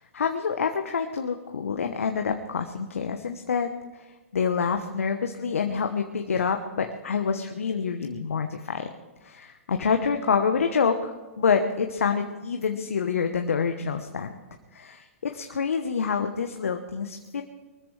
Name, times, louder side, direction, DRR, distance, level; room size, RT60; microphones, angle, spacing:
voice 1, 0.0-3.7 4.3-8.9 9.2-14.3 14.7-17.4, left 6 dB, 75° left, 6 dB, 1.0 m, -27 dB
23.0 x 13.5 x 3.3 m, 1.2 s
hypercardioid pair, 115°, 7 cm